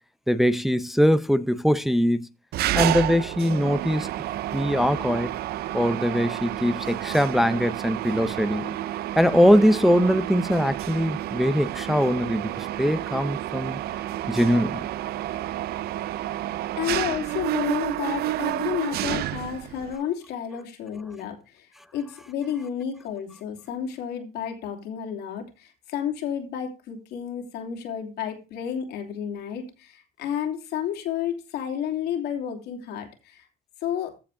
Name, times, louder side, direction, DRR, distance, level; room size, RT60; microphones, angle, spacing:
voice 1, 0.3-2.3 2.7-4.1 4.5-5.3 5.7-8.8 9.2-13.8 14.3-14.9, equal, ahead, 0.6 m, -22 dB
Mechanisms, 2.5-20.0, right 14 dB, 70° right, 0.5 m, -30 dB
voice 2, 16.8-33.5 33.8-34.1, left 9 dB, 85° left, 2.9 m, -31 dB
14.5 x 5.0 x 3.7 m
cardioid pair, 110°, 17 cm